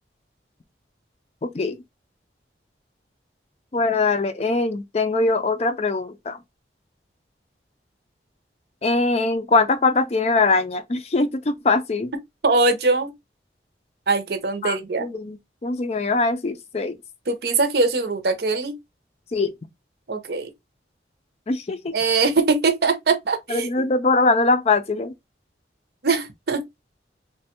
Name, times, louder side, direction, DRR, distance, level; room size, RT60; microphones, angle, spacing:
voice 1, 1.4-1.8 3.7-6.4 8.8-12.1 14.6-17.0 19.3-19.5 21.5-21.9 23.5-25.1, left 3 dB, 35° left, 0.4 m, -22 dB
voice 2, 12.4-13.1 14.1-15.0 17.3-18.8 20.1-20.5 21.9-23.7 26.0-26.6, right 3 dB, 60° right, 0.7 m, -21 dB
3.2 x 2.2 x 2.9 m
head